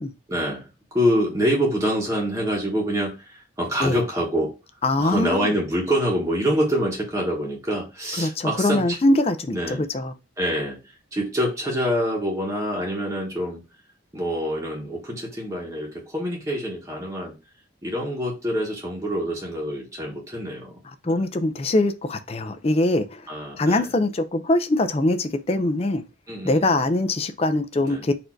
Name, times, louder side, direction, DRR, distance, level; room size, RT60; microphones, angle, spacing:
voice 1, 0.3-4.5 5.0-9.0 9.5-9.8 10.4-13.6 14.1-17.3 17.8-21.2 23.3-23.9 26.3-26.9 27.8-28.0, equal, 15° right, 1.0 m, -26 dB
voice 2, 4.8-5.5 8.2-10.1 21.0-23.2 23.6-26.0 26.4-28.1, left 2 dB, 30° left, 0.4 m, -22 dB
4.2 x 2.6 x 4.4 m
head